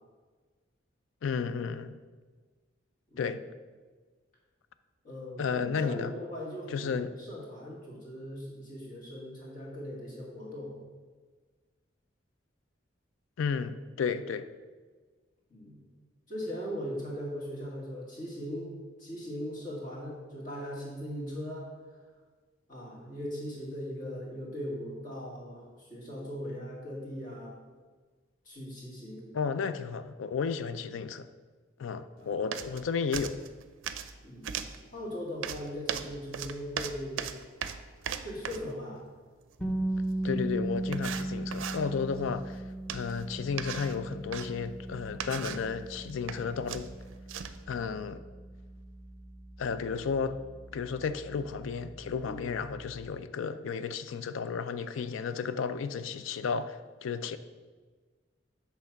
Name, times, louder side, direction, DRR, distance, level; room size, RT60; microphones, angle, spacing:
voice 1, 1.2-2.0 3.2-3.4 5.4-6.1 6.7-7.1 13.4-14.5 29.3-31.3 31.8-33.4 40.2-42.6 42.9-46.9 47.7-48.2 49.6-50.4 50.7-57.4, left 5 dB, 85° left, 12 dB, 0.4 m, -33 dB
voice 2, 5.0-10.8 15.5-15.8 16.3-18.7 19.0-21.7 22.7-27.6 28.4-29.3 32.2-32.3 34.2-34.5 34.9-37.3 38.2-39.0 52.2-52.5, equal, 40° left, -5 dB, 2.2 m, -39 dB
sound 1, 32.5-32.8 33.1-34.1 34.4-34.8 35.4-38.7 40.2-40.3 40.9-41.8 42.9-43.2 43.6-44.5 45.1-45.7 46.1-46.4 46.7-47.6, right 8 dB, 80° right, 0.4 m, -37 dB
sound 2, 39.6-51.4, right 1 dB, 5° left, 0.7 m, -37 dB
7.9 x 3.4 x 5.8 m, 1.4 s
head